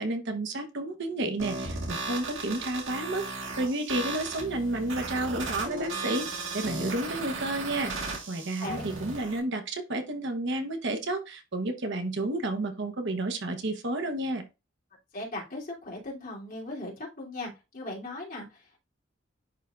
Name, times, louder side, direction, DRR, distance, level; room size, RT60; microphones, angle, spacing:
voice 1, 0.0-3.3 3.6-14.4, right 2 dB, 65° right, 6 dB, 1.0 m, -31 dB
sound 1, 1.4-9.4, right 3 dB, 85° right, 2.1 m, -36 dB
voice 2, 8.6-8.9 15.1-18.8, left 2 dB, 45° left, -5 dB, 3.0 m, -38 dB
10.5 x 3.6 x 2.5 m, 0.27 s
head